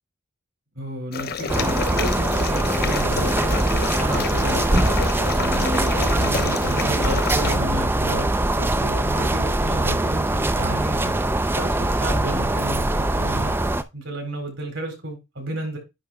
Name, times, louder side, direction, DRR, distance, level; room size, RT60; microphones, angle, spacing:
voice 1, 0.7-4.9 5.4-8.3 8.5-11.2 11.6-13.5 13.9-15.8, right 1 dB, 75° right, 2 dB, 4.3 m, -32 dB
sound 1, 1.1-7.6, left 5 dB, 50° left, 0.6 m, -29 dB
sound 2, 1.5-13.8, right 1 dB, 10° right, 0.4 m, -22 dB
10.0 x 3.4 x 4.9 m, 0.24 s
head